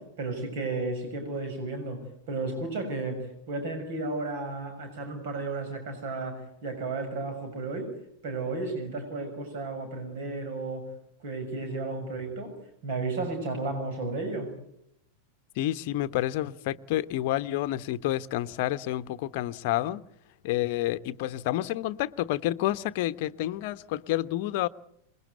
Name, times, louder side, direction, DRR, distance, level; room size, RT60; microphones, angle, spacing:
voice 1, 0.0-7.9 8.2-10.9 11.2-12.6 12.8-14.5, right 3 dB, 55° right, 6.7 m, -33 dB
voice 2, 15.6-20.0 20.4-24.7, left 14 dB, 50° left, 1.0 m, -29 dB
27.5 x 21.0 x 9.5 m
figure-of-eight pair, 90°, 0 cm